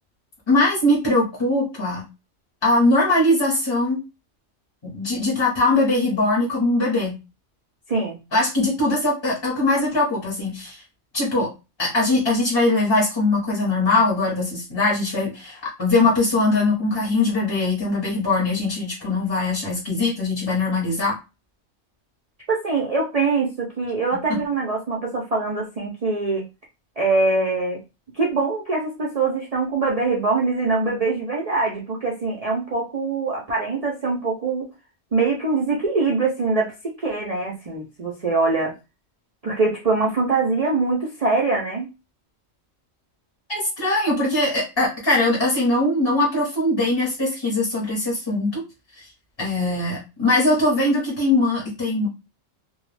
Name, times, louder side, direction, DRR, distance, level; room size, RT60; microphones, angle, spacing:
voice 1, 0.5-2.0 2.6-4.0 4.8-7.2 8.3-10.8 11.1-11.5 11.8-21.1 24.3-24.4 43.5-48.6 49.0-49.1 49.4-52.1, left 2 dB, 25° left, -4 dB, 0.7 m, -21 dB
voice 2, 7.9-8.2 22.5-26.5 27.0-27.8 28.1-34.7 35.1-36.7 37.0-38.7 39.4-41.9, right 3 dB, 50° right, -3 dB, 0.4 m, -23 dB
2.3 x 2.1 x 3.2 m, 0.27 s
omnidirectional pair, 1.4 m